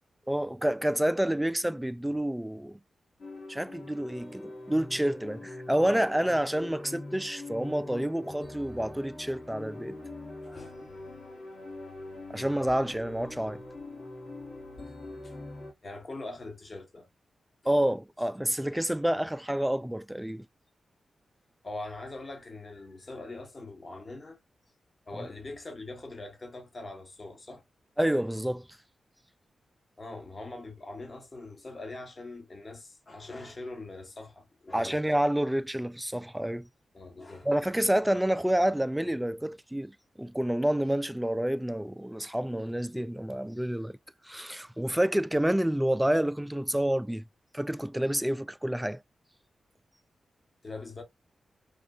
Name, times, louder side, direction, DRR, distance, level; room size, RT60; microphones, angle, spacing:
voice 1, 0.3-2.8 3.5-10.0 12.3-13.6 17.7-20.5 25.1-25.3 28.0-28.7 34.7-36.7 37.5-44.0 44.2-47.3 47.5-49.0, right 1 dB, 10° right, 0.3 m, -28 dB
sound 1, 3.2-15.7, left 2 dB, 60° left, 2.1 m, -43 dB
voice 2, 10.4-11.0 15.2-15.3 15.8-17.1 21.6-24.4 25.1-27.6 30.0-35.0 36.9-37.5 50.6-51.0, left 2 dB, 45° left, 1.3 m, -42 dB
3.5 x 2.6 x 2.4 m
supercardioid pair, 45°, 0 cm